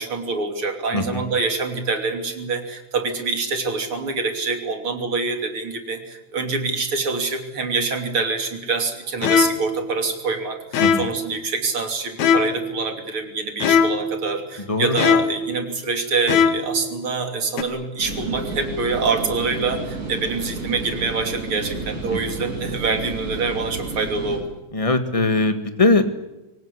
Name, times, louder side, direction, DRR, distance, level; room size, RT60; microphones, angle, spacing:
voice 1, 0.0-24.4, right 4 dB, 45° right, 6 dB, 3.6 m, -25 dB
voice 2, 0.9-1.2 10.8-11.1 14.7-15.0 22.1-22.2 24.7-26.0, left 3 dB, 15° left, 8 dB, 1.3 m, -20 dB
sound 1, 9.2-9.8 10.7-11.3 12.2-12.7 13.6-14.2 15.0-15.5 16.3-16.8 17.6-17.7, left 6 dB, 70° left, 2.7 m, -19 dB
sound 2, 18.0-24.4, right 2 dB, 60° right, 9.2 m, -31 dB
25.0 x 18.5 x 9.9 m, 0.98 s
omnidirectional pair, 3.5 m